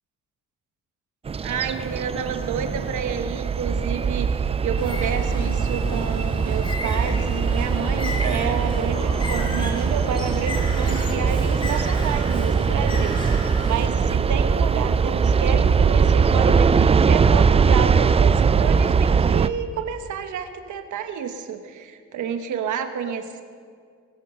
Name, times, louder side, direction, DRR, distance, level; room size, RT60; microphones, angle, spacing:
sound 1, 1.3-19.5, right 6 dB, 20° right, 0.4 m, -21 dB
voice 1, 1.4-23.4, right 7 dB, 75° right, 8 dB, 1.2 m, -30 dB
Bird, 4.8-13.9, left 1 dB, 15° left, 2.4 m, -33 dB
20.5 x 8.3 x 6.7 m, 2.1 s
cardioid pair, 90°, 30 cm